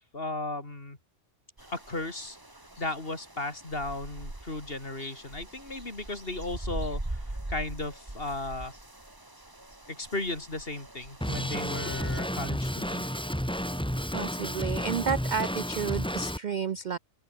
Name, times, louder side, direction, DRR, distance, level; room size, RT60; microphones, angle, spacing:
voice 1, 0.1-1.0 1.7-2.4 2.8-7.2 7.5-8.7 9.9-13.1, left 2 dB, 45° left, 4.0 m, -35 dB
sound 1, 1.6-12.2, right 1 dB, 15° right, 2.2 m, -42 dB
Drum kit, 11.2-16.4, equal, 5° left, 3.3 m, -31 dB
voice 2, 14.1-17.0, right 6 dB, 55° right, 0.5 m, -31 dB
open air
omnidirectional pair, 1.4 m